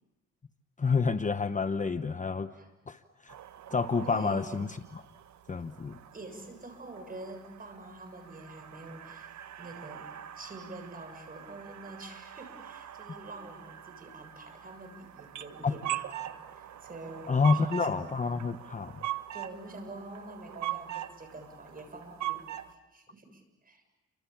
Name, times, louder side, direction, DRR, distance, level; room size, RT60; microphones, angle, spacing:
voice 1, 0.8-2.5 2.9-3.3 3.7-4.7 4.9-5.0 5.5-6.0 15.6-15.7 17.3-18.9, left 4 dB, 25° left, 10 dB, 1.0 m, -28 dB
sound 1, 3.3-22.7, right 13 dB, 65° right, 1.4 m, -42 dB
voice 2, 4.0-4.6 6.1-9.3 9.6-18.1 19.3-23.8, right 2 dB, 30° right, 7 dB, 7.2 m, -46 dB
29.5 x 25.5 x 7.2 m, 1.0 s
cardioid pair, 90°, 30 cm